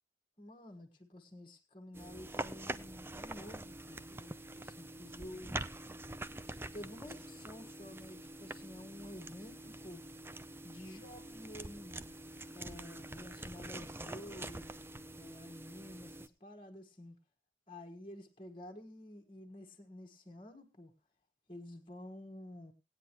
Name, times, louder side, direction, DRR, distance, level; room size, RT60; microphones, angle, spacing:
voice 1, 0.4-5.6 6.4-10.0 10.6-12.1 12.5-14.7 15.2-17.2 17.7-20.9 21.5-22.7, left 1 dB, 30° left, 1.6 m, -50 dB
sound 1, 1.9-16.3, right 2 dB, 10° right, 0.5 m, -45 dB
18.5 x 9.5 x 3.0 m
head